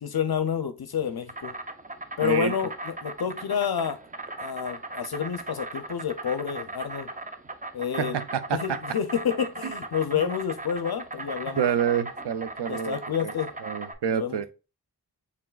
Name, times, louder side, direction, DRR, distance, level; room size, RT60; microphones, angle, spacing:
voice 1, 0.0-1.5 2.2-4.0 4.4-7.1 7.7-8.2 8.5-11.6 12.7-13.5 14.1-14.4, left 8 dB, 65° left, 0.5 m, -29 dB
Insect, 0.9-13.9, right 2 dB, 20° right, 0.5 m, -38 dB
voice 2, 2.2-2.5 8.0-8.8 9.6-9.7 10.1-10.3 11.6-13.0 13.6-14.5, right 8 dB, 75° right, 0.5 m, -27 dB
4.5 x 3.5 x 2.3 m
wide cardioid pair, 50°, 42 cm